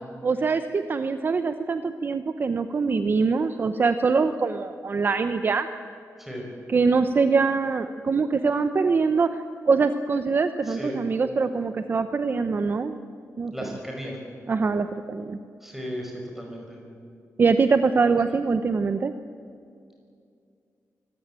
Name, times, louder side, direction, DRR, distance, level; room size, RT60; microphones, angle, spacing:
voice 1, 0.2-5.7 6.7-13.0 13.4-13.5 14.5-15.4 17.4-19.1, right 4 dB, 40° right, 10 dB, 0.7 m, -23 dB
voice 2, 10.6-11.0 13.5-14.2 15.6-16.8, equal, 5° right, 0 dB, 5.4 m, -35 dB
24.5 x 16.0 x 9.0 m, 2.4 s
wide cardioid pair, 145°, 6 cm